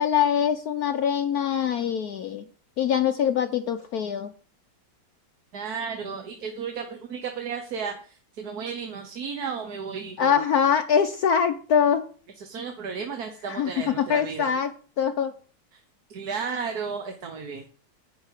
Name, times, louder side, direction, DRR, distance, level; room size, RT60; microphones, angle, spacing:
voice 1, 0.0-2.4 2.8-4.3 10.2-12.0 13.5-15.3, left 8 dB, 65° left, 8 dB, 1.1 m, -23 dB
voice 2, 5.5-10.3 12.4-14.5 16.1-17.7, right 6 dB, 60° right, 5 dB, 1.6 m, -33 dB
10.5 x 5.1 x 8.3 m, 0.42 s
omnidirectional pair, 2.0 m